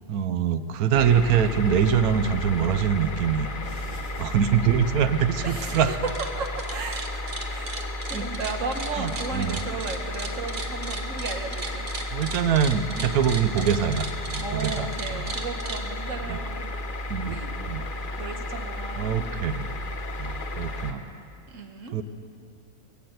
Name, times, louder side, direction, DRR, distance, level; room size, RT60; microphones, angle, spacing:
voice 1, 0.1-3.5 4.2-5.9 8.1-8.3 9.0-9.6 12.1-15.3 16.3-16.4 17.1-17.8 19.0-19.7 20.2-21.0 21.9-22.0, right 8 dB, 85° right, 11 dB, 1.2 m, -24 dB
sound 1, 0.9-20.9, left 1 dB, 40° left, 0.9 m, -33 dB
voice 2, 3.6-4.2 5.4-6.1 6.4-7.8 8.1-11.9 13.0-13.1 14.4-16.7 17.2-17.5 18.2-19.3 21.5-22.0, right 4 dB, 60° right, 5 dB, 1.5 m, -35 dB
sound 2, 5.5-5.8 6.1-15.8, right 4 dB, 35° right, 1.2 m, -36 dB
20.0 x 8.6 x 7.9 m, 2.6 s
omnidirectional pair, 1.5 m